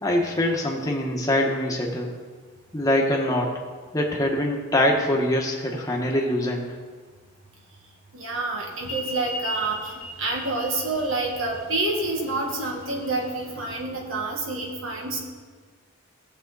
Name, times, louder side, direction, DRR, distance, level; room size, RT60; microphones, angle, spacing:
voice 1, 0.0-2.1 2.7-3.6 3.9-6.8, left 1 dB, 15° left, -1 dB, 1.4 m, -24 dB
voice 2, 8.1-9.9 10.2-15.2, right 2 dB, 65° right, 0 dB, 2.1 m, -28 dB
sound 1, 8.8-13.8, left 1 dB, 80° left, 1.6 m, -37 dB
16.0 x 7.8 x 4.1 m, 1.6 s
head